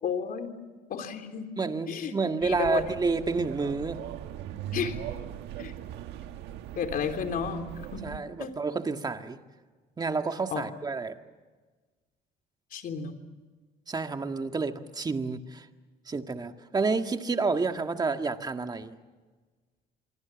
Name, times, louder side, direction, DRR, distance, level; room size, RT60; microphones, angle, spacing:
voice 1, 0.0-0.6 0.9-1.5 1.9-2.2 2.4-2.8 4.7-5.0 5.6-5.7 6.8-8.0 8.4-8.5 10.5-10.7 12.7-13.2, left 7 dB, 60° left, 5 dB, 3.4 m, -32 dB
voice 2, 1.6-4.0 8.0-9.4 10.0-11.2 13.9-15.7 16.1-19.0, right 4 dB, 25° right, 6 dB, 1.8 m, -29 dB
sound 1, 2.4-8.2, right 11 dB, 90° right, 1.5 m, -40 dB
26.5 x 24.0 x 7.3 m, 1.3 s
cardioid pair, 110°, 17 cm